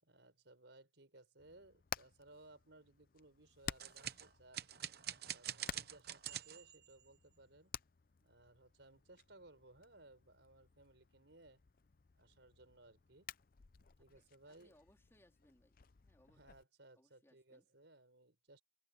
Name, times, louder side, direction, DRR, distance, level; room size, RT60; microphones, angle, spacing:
voice 1, 0.0-4.7 5.3-7.7 8.2-11.6 12.1-13.3 14.0-14.8 16.3-18.6, right 2 dB, 80° right, 4.5 m, -62 dB
Hammer, 1.4-16.6, left 7 dB, 50° left, 0.6 m, -54 dB
sound 1, 3.8-7.0, right 11 dB, 60° right, 1.0 m, -46 dB
voice 2, 14.0-16.5 16.9-17.7, left 1 dB, 15° left, 3.8 m, -71 dB
head